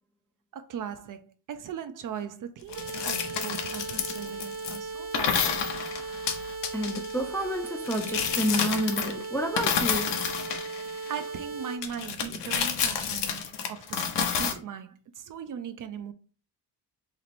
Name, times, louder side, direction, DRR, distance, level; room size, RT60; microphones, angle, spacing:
voice 1, 0.5-1.2 1.5-5.7 11.1-16.1, right 8 dB, 50° right, 0.5 m, -39 dB
sound 1, 2.7-4.8 5.1-7.1 7.8-9.2 9.6-11.2 11.8-14.5, left 7 dB, 80° left, 0.8 m, -29 dB
sound 2, 2.7-11.8, right 4 dB, 70° right, 1.3 m, -37 dB
voice 2, 6.7-10.2, equal, 5° left, 0.4 m, -29 dB
3.1 x 2.9 x 4.2 m
cardioid pair, 135°, 41 cm